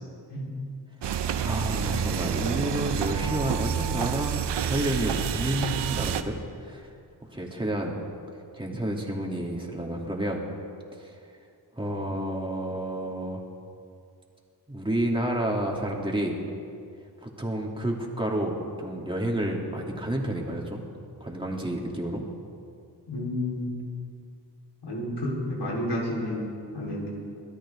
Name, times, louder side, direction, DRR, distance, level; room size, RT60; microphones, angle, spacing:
sound 1, 1.0-6.2, right 8 dB, 75° right, 0.9 m, -28 dB
voice 1, 1.4-6.9 7.3-8.0 8.5-10.4 10.9-11.2 11.8-13.4 14.7-16.4 17.2-20.9 21.2-22.2, right 1 dB, 10° right, -1 dB, 3.1 m, -30 dB
voice 2, 23.1-23.7 24.8-27.1, left 1 dB, 70° left, -4 dB, 4.4 m, -31 dB
22.0 x 13.0 x 3.8 m, 2.4 s
cardioid pair, 55°, 42 cm